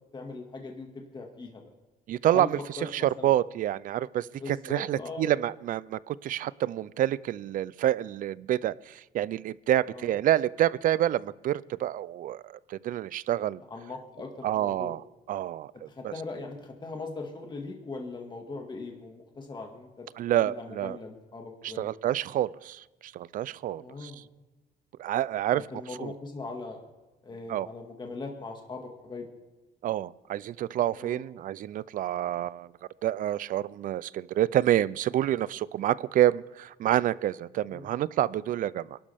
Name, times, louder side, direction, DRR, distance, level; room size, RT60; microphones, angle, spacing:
voice 1, 0.1-1.7 2.3-2.5 2.8-3.3 4.3-5.3 9.9-10.1 13.7-14.9 15.9-21.9 23.7-24.3 25.5-26.8 27.2-29.3 30.9-31.2 37.7-37.9, left 3 dB, 25° left, 2 dB, 2.0 m, -40 dB
voice 2, 2.1-2.6 2.9-13.6 14.4-15.0 15.3-16.1 20.2-21.0 21.6-24.1 25.0-25.7 26.0-26.1 27.5-27.7 29.8-32.7 33.0-39.0, right 12 dB, 55° right, 21 dB, 0.4 m, -28 dB
23.5 x 12.0 x 3.5 m, 1.1 s
cardioid pair, 110°, 17 cm